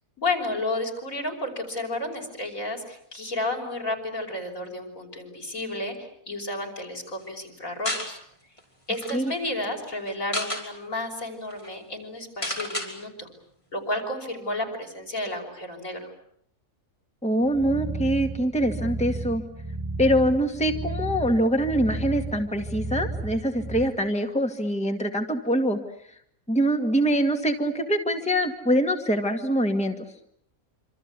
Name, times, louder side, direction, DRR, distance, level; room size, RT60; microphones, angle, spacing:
voice 1, 0.2-8.2 8.9-13.3 13.7-16.1, left 2 dB, 75° left, 2 dB, 6.1 m, -32 dB
sound 1, 7.8-8.1 8.6-8.7 8.9-9.2 10.1-10.6 11.2-11.3 11.5-11.7 12.4-12.9, left 1 dB, 20° left, 5.5 m, -30 dB
voice 2, 17.2-19.4 20.0-25.8 26.5-30.1, equal, 5° left, 4 dB, 2.0 m, -24 dB
sound 2, 17.4-23.8, right 2 dB, 15° right, 1.8 m, -33 dB
26.5 x 26.5 x 8.3 m, 0.68 s
omnidirectional pair, 1.4 m